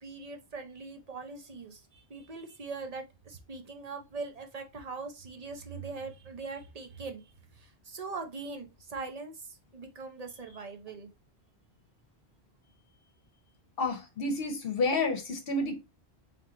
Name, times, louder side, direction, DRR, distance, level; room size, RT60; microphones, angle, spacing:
voice 1, 0.0-11.1, right 4 dB, 40° right, 0.7 m, -41 dB
voice 2, 13.8-15.8, left 2 dB, 60° left, 0.9 m, -30 dB
3.5 x 2.9 x 3.7 m
omnidirectional pair, 1.1 m